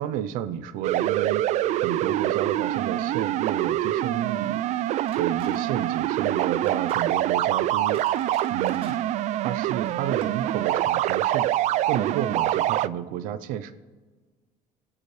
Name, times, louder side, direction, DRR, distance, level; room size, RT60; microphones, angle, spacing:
voice 1, 0.0-4.6 5.2-8.0 8.5-9.0 9.3-11.5 11.9-13.7, right 10 dB, 80° right, 12 dB, 0.8 m, -31 dB
sound 1, 0.8-12.9, right 13 dB, 60° right, 0.4 m, -25 dB
sound 2, 5.1-5.7 5.9-6.1 6.6-7.1 7.6-9.0 9.7-9.9 10.2-10.3, right 5 dB, 40° right, 1.9 m, -46 dB
25.5 x 9.8 x 3.3 m, 1.4 s
cardioid pair, 120°, 14 cm